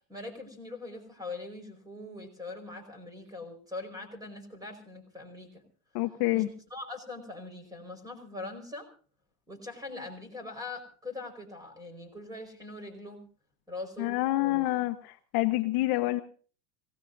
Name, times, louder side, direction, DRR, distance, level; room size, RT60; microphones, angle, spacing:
voice 1, 0.1-5.6 6.3-8.9 9.5-13.2 13.7-14.5, left 2 dB, 10° right, 6 dB, 4.9 m, -42 dB
voice 2, 5.9-6.5 14.0-16.2, left 18 dB, 50° left, 8 dB, 1.1 m, -27 dB
26.5 x 17.5 x 2.7 m, 0.41 s
supercardioid pair, 130°, 47 cm